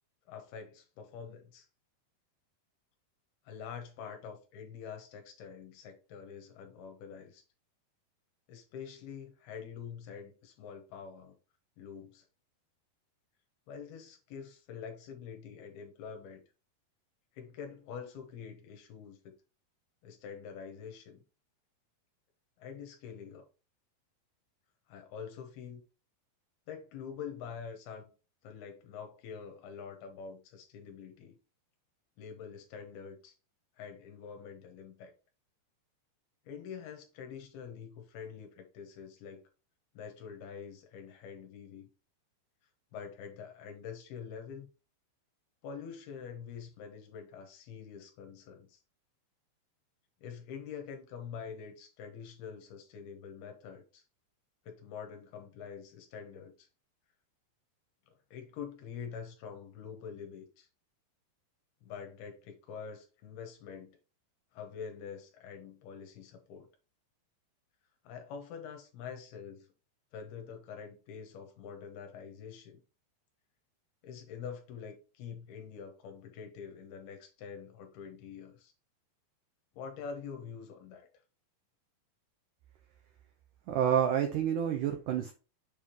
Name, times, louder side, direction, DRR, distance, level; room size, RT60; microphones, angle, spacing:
voice 1, 0.3-1.7 3.5-7.4 8.5-11.3 11.8-12.3 13.7-16.4 17.3-19.2 20.0-21.2 22.6-23.4 24.9-25.8 26.7-28.1 28.4-31.4 32.2-33.3 33.8-35.1 36.4-39.5 39.9-41.9 42.9-44.7 45.6-48.8 50.2-54.0 54.6-56.7 58.1-60.7 61.8-63.9 64.5-66.7 68.0-69.7 70.1-72.8 74.0-78.7 79.8-81.1, left 7 dB, 75° left, 3.1 m, -45 dB
voice 2, 83.7-85.3, right 9 dB, 85° right, 1.8 m, -28 dB
7.4 x 3.6 x 4.5 m
omnidirectional pair, 4.7 m